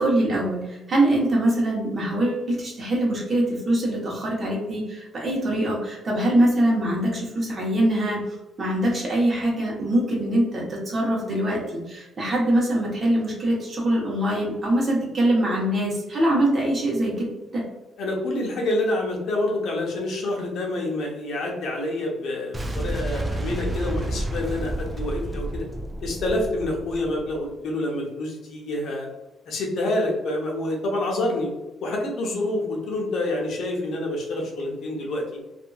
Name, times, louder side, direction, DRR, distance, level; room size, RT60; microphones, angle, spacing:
voice 1, 0.0-8.2 8.6-17.6, right 1 dB, 40° right, -3 dB, 1.1 m, -23 dB
voice 2, 18.0-25.7 26.0-29.1 29.5-31.5 31.8-35.2, left 1 dB, 70° left, -1 dB, 0.8 m, -27 dB
Boom, 22.5-27.5, right 1 dB, 25° right, 0.4 m, -30 dB
2.6 x 2.6 x 2.4 m, 1.1 s
cardioid pair, 90°, 0 cm